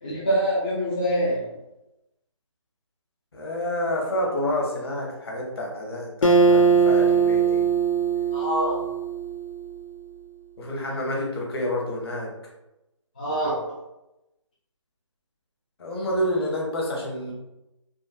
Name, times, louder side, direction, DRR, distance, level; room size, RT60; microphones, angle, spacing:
voice 1, 0.0-1.5 8.3-8.8 13.2-13.7, equal, 15° left, -9 dB, 0.3 m, -25 dB
voice 2, 3.3-7.6 10.6-12.3 15.8-17.3, left 1 dB, 50° left, -2 dB, 0.8 m, -28 dB
Acoustic guitar, 6.2-9.7, right 5 dB, 85° left, 0.5 m, -20 dB
3.6 x 2.0 x 2.4 m, 0.95 s
figure-of-eight pair, 155°, 17 cm